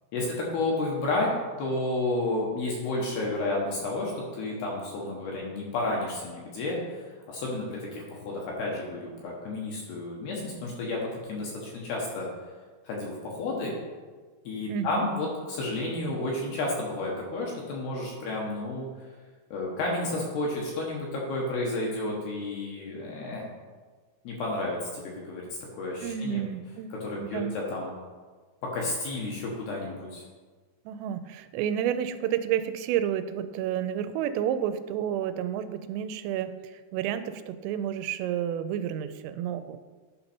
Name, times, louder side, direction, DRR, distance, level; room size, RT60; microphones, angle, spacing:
voice 1, 0.1-1.3 1.6-12.3 12.9-13.7 14.4-18.9 19.5-23.5 24.2-25.5 25.7-26.4 26.9-27.9 28.6-30.2, left 2 dB, 70° left, -2 dB, 2.6 m, -31 dB
voice 2, 14.7-15.0 26.0-26.9 27.2-27.6 30.9-39.8, right 10 dB, 90° right, 11 dB, 3.2 m, -30 dB
11.5 x 5.4 x 4.4 m, 1.4 s
omnidirectional pair, 5.7 m